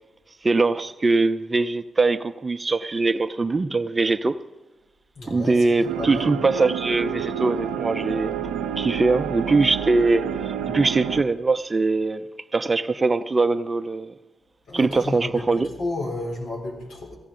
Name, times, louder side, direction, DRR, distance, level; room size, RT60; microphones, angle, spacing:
voice 1, 0.4-4.3 5.3-8.3 8.8-12.2 12.5-14.1 14.7-15.7, right 3 dB, 35° right, 0.6 m, -22 dB
voice 2, 5.2-6.3 14.7-17.2, left 2 dB, 75° left, 3.8 m, -32 dB
sound 1, 5.8-11.2, right 9 dB, 85° right, 0.6 m, -29 dB
17.5 x 15.5 x 3.8 m
hypercardioid pair, 40°, 0 cm